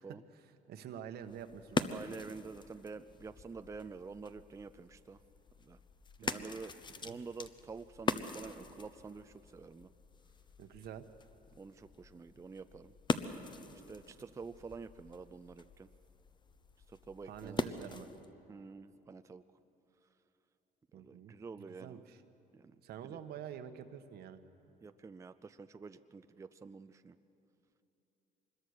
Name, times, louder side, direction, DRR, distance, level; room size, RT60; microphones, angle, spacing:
voice 1, 0.3-2.1 6.2-6.6 7.0-7.2 10.6-11.1 17.2-18.1 20.9-22.2 22.8-24.4, right 9 dB, 70° right, 8 dB, 1.2 m, -48 dB
sound 1, 1.2-18.3, left 4 dB, 25° left, 0.8 m, -42 dB
voice 2, 1.8-5.2 5.6-5.8 6.2-6.7 7.0-9.9 11.5-12.9 13.7-15.9 16.9-17.9 18.5-19.4 20.9-22.0 22.5-22.8 23.0-23.2 24.8-27.2, right 4 dB, 20° right, 10 dB, 0.5 m, -48 dB
24.5 x 21.0 x 6.5 m, 3.0 s
cardioid pair, 110°, 17 cm